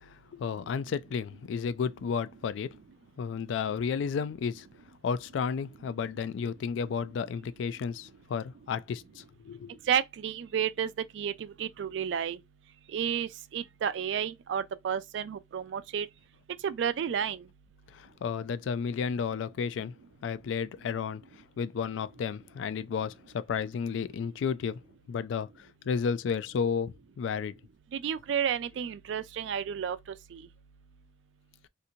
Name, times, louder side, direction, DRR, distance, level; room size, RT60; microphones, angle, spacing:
voice 1, 0.0-2.8 3.2-4.7 5.0-9.7 17.9-19.9 20.2-21.2 21.6-24.8 25.1-27.6, left 6 dB, 85° left, 0.3 m, -32 dB
voice 2, 9.9-12.4 12.9-16.1 16.6-17.4 27.9-30.0 30.3-30.4, right 8 dB, 70° right, 0.3 m, -31 dB
2.7 x 2.5 x 2.7 m
head